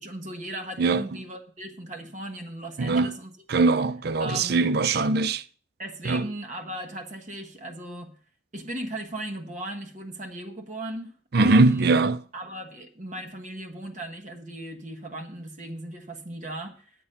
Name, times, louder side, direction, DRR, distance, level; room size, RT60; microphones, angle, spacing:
voice 1, 0.0-3.3 4.2-4.7 5.8-8.1 8.5-11.9 12.3-16.8, right 1 dB, 40° right, 1.4 m, -37 dB
voice 2, 2.8-3.1 3.5-5.4 6.0-6.3 11.3-12.2, right 3 dB, 55° right, 0.5 m, -21 dB
8.8 x 8.3 x 5.7 m
head